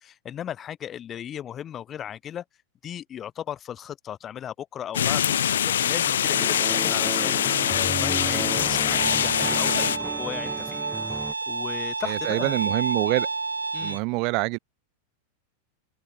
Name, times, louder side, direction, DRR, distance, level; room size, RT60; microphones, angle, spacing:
voice 1, 0.0-2.4 2.8-5.4 5.6-12.6 13.7-14.0, left 10 dB, 25° left, 2.0 m, -36 dB
sound 1, 4.9-10.0, left 9 dB, 65° left, 1.7 m, -23 dB
sound 2, 6.3-11.3, right 3 dB, 10° right, 0.6 m, -34 dB
Bowed string instrument, 8.9-14.0, right 4 dB, 80° right, 1.5 m, -30 dB
voice 2, 12.0-13.3 13.8-14.6, right 29 dB, 45° right, 2.6 m, -26 dB
open air
figure-of-eight pair, 90°, 0 cm